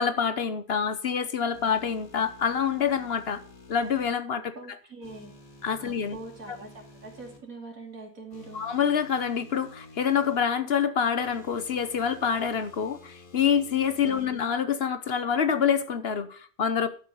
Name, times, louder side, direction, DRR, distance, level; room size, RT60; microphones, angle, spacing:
voice 1, 0.0-3.4 3.7-4.5 5.6-6.2 6.5-6.6 8.5-16.9, left 7 dB, 50° left, 1.0 m, -26 dB
sound 1, 1.5-4.1 5.0-7.4 8.3-10.4 11.2-14.3, left 2 dB, 70° left, 2.3 m, -51 dB
voice 2, 4.5-5.3 5.8-8.6 14.0-14.3, right 3 dB, 65° right, 3.3 m, -43 dB
12.0 x 5.5 x 6.3 m
omnidirectional pair, 1.5 m